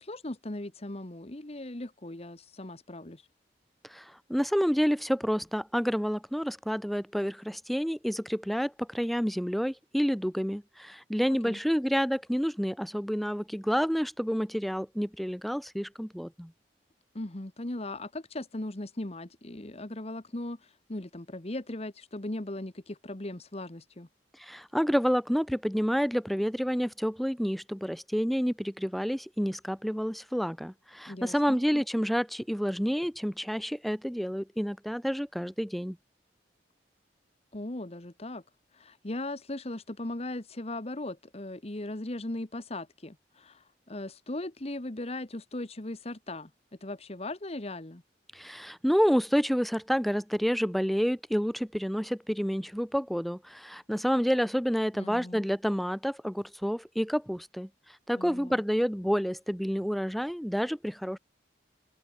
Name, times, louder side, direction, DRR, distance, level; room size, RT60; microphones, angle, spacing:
voice 1, 0.0-3.2 11.3-11.6 17.1-24.1 31.1-31.8 37.5-38.4 38.7-46.5 46.8-48.0 55.0-55.4 58.1-58.6, left 1 dB, 35° left, 1.3 m, -38 dB
voice 2, 3.9-16.5 24.4-36.0 48.3-57.7 58.1-61.2, equal, ahead, 2.5 m, -29 dB
open air
head